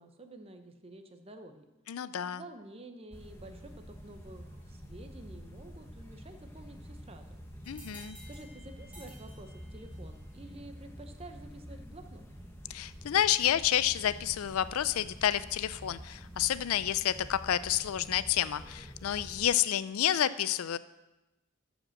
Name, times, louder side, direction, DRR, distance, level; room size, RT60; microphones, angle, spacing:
voice 1, 0.0-1.7 2.3-7.2 8.3-12.2, right 1 dB, 25° right, 7 dB, 0.7 m, -50 dB
voice 2, 1.9-2.4 7.7-8.2 12.7-20.8, left 11 dB, 80° left, 16 dB, 0.4 m, -29 dB
sound 1, 3.1-19.5, equal, 10° left, 1.2 m, -48 dB
sound 2, 7.6-10.2, equal, 5° right, 2.9 m, -54 dB
13.5 x 5.1 x 6.4 m, 1.0 s
head